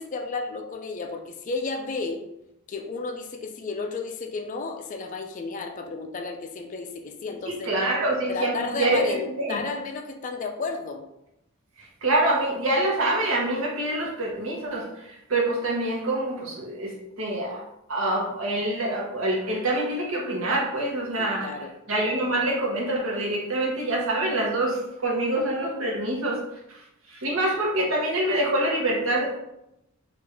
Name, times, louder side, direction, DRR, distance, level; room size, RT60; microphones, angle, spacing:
voice 1, 0.0-2.2 2.7-7.7 8.3-11.0 21.2-21.7, left 4 dB, 35° left, 4 dB, 0.3 m, -32 dB
voice 2, 7.5-9.6 12.0-17.6 17.9-21.5 21.9-26.4 26.7-26.8 27.1-29.4, right 1 dB, 75° right, -2 dB, 0.9 m, -26 dB
3.4 x 2.5 x 3.4 m, 0.86 s
head